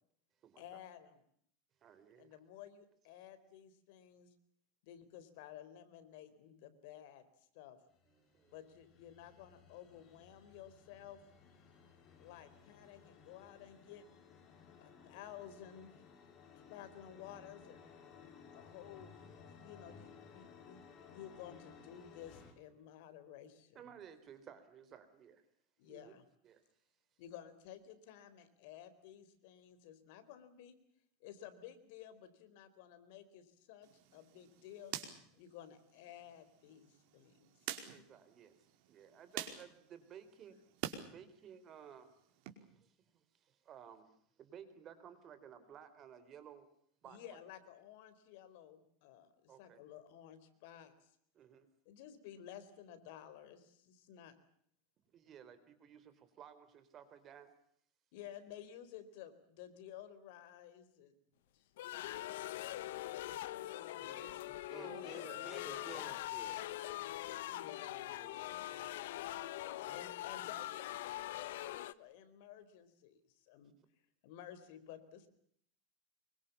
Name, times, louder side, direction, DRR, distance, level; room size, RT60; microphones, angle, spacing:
voice 1, 0.6-1.2 2.2-4.3 4.8-7.8 8.5-11.2 12.2-14.1 14.8-16.0 16.7-17.9 18.5-19.2 19.5-23.9 25.8-26.2 27.2-30.8 31.2-34.9 35.4-37.5 47.0-51.1 51.9-54.4 58.1-61.2 61.5-61.7 62.7-65.4 67.5-68.2 69.9-73.7 74.2-75.3, left 10 dB, 60° left, 11 dB, 4.2 m, -54 dB
voice 2, 1.8-2.4 8.2-8.6 23.7-25.4 25.9-26.1 26.4-26.6 37.9-38.6 38.9-40.6 41.0-42.1 42.6-46.7 47.0-47.2 49.5-49.8 51.3-51.7 55.1-57.5 64.7-66.0 67.9-68.1 68.7-69.0 69.4-70.0, right 8 dB, 30° right, 12 dB, 3.9 m, -56 dB
sound 1, 7.9-22.5, left 6 dB, 30° left, 5.1 m, -59 dB
sound 2, 33.8-41.0 41.4-42.5, right 11 dB, 55° right, 4.9 m, -48 dB
sound 3, 61.8-71.9, left 15 dB, 80° left, 1.1 m, -43 dB
voice 3, 64.0-64.3 64.7-66.7 68.1-68.6 69.8-70.0, left 1 dB, 5° left, 8 dB, 3.2 m, -54 dB
26.0 x 24.0 x 7.1 m, 0.67 s
supercardioid pair, 155°, 0 cm